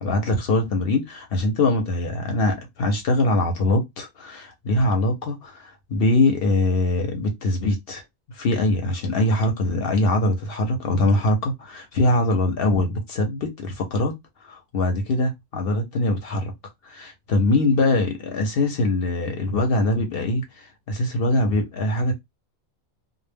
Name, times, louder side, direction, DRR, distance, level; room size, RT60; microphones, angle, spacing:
voice 1, 0.0-8.0 8.3-14.1 14.4-16.5 16.8-22.1, left 2 dB, 60° left, 0.8 m, -22 dB
2.1 x 2.1 x 3.3 m
omnidirectional pair, 1.2 m